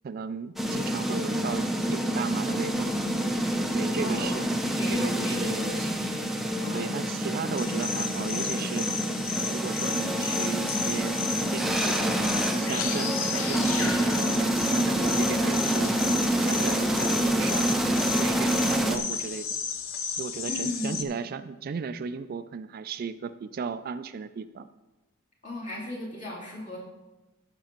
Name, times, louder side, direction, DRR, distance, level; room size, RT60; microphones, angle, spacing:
voice 1, 0.0-2.9 3.7-4.4 4.9-5.9 6.7-8.9 9.5-11.2 11.5-12.2 12.5-15.9 16.4-17.7 18.1-19.6 20.1-24.7, right 5 dB, 45° right, 12 dB, 0.3 m, -35 dB
sound 1, 0.6-19.0, right 1 dB, ahead, 0.6 m, -27 dB
voice 2, 3.9-6.2 6.6-7.2 20.5-21.1 25.4-26.8, left 1 dB, 40° left, -6 dB, 3.0 m, -36 dB
sound 2, 7.6-21.0, left 6 dB, 75° left, 0.7 m, -34 dB
14.5 x 6.8 x 3.0 m, 1.1 s
head